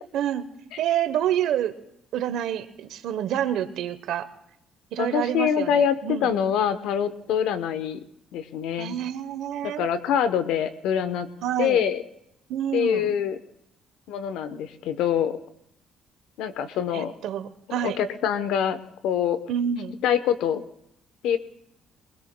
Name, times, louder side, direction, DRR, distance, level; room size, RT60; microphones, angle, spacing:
voice 1, 0.1-0.4 0.8-1.7 2.1-4.3 4.9-6.3 8.8-9.9 11.4-11.8 12.5-13.2 16.9-18.0 19.5-20.0, right 10 dB, 75° right, 11 dB, 0.9 m, -28 dB
voice 2, 5.0-8.0 8.3-9.0 9.6-11.3 11.6-12.0 12.7-13.4 14.1-15.4 16.4-17.1 17.8-18.8 19.0-19.4 20.0-20.6 21.2-21.4, left 8 dB, 85° left, 11 dB, 0.8 m, -24 dB
22.5 x 20.5 x 2.2 m, 0.76 s
cardioid pair, 115°, 0 cm